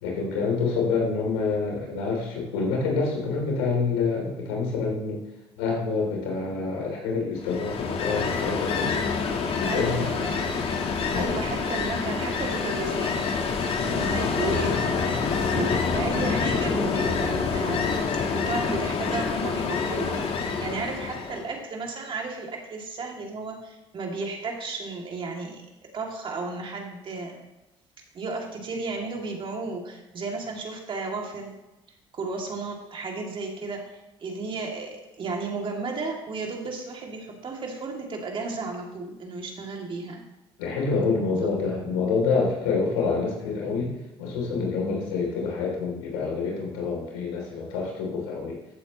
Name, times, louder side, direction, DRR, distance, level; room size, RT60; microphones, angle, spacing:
voice 1, 0.0-5.2 5.6-8.9 9.6-10.0 11.1-11.4 40.6-43.9 44.2-48.6, left 4 dB, 90° left, 0 dB, 3.3 m, -27 dB
Ocean, 7.4-21.5, left 5 dB, 50° left, 1.6 m, -27 dB
voice 2, 9.6-10.6 11.1-13.2 13.8-14.8 15.5-25.6 25.9-27.4 28.1-31.5 32.1-40.2, right 3 dB, 45° right, 0 dB, 2.8 m, -33 dB
14.5 x 8.4 x 3.2 m, 1.0 s
supercardioid pair, 75°, 12 cm